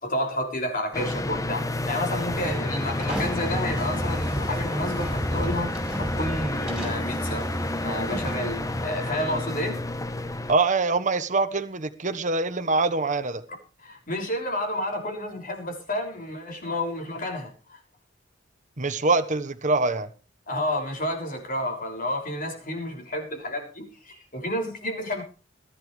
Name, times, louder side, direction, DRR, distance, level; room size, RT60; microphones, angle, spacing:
voice 1, 0.0-7.5 7.8-9.8 13.8-17.8 20.5-25.2, left 1 dB, 45° left, 6.2 m, -30 dB
sound 1, 0.9-10.5, left 1 dB, 20° left, 1.0 m, -30 dB
sound 2, 2.3-8.9, equal, ahead, 5.4 m, -33 dB
voice 2, 10.5-13.4 18.8-20.1, right 3 dB, 40° right, 1.3 m, -24 dB
21.5 x 11.5 x 3.3 m
head